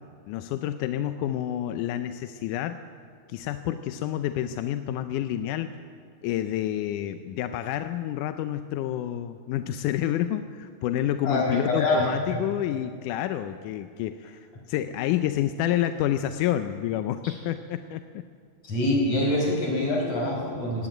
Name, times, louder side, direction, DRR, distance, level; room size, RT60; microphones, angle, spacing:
voice 1, 0.3-2.8 3.3-5.8 6.2-14.4 14.7-18.0, left 12 dB, 75° left, 9 dB, 2.0 m, -29 dB
voice 2, 11.2-12.4 17.2-17.4 18.6-20.9, left 1 dB, 50° left, 0 dB, 6.3 m, -25 dB
18.5 x 17.5 x 9.4 m, 2.2 s
omnidirectional pair, 4.0 m